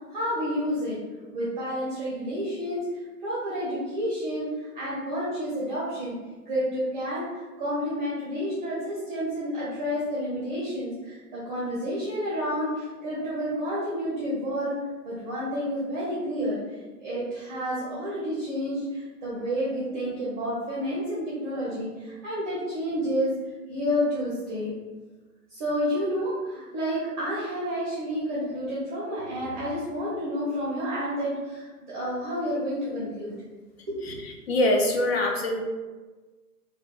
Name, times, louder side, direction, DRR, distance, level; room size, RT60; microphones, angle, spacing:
voice 1, 0.1-1.0 1.3-2.8 3.2-6.2 6.5-7.2 7.6-14.7 15.0-16.6 17.0-23.3 23.7-24.8 25.5-33.3 34.0-34.2, equal, 30° right, -7 dB, 0.6 m, -30 dB
voice 2, 34.5-35.6, left 1 dB, 40° left, 1 dB, 0.5 m, -23 dB
3.4 x 2.2 x 2.4 m, 1.3 s
figure-of-eight pair, 130°, 48 cm